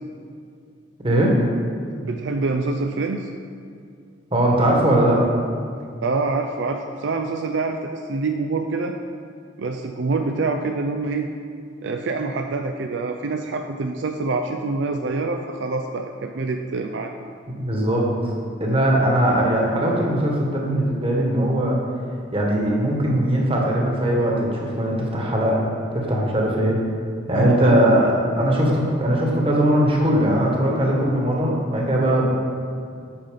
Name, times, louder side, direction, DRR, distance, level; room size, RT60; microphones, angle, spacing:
voice 1, 2.0-3.3 6.0-9.0 9.6-11.3 11.8-17.1 27.3-27.8, right 3 dB, 65° right, 4 dB, 0.5 m, -26 dB
voice 2, 4.3-5.2 17.6-18.0 18.6-21.8 22.3-25.6 25.9-26.8 27.3-32.3, right 1 dB, 30° right, -2 dB, 1.5 m, -20 dB
8.8 x 5.9 x 5.2 m, 2.3 s
head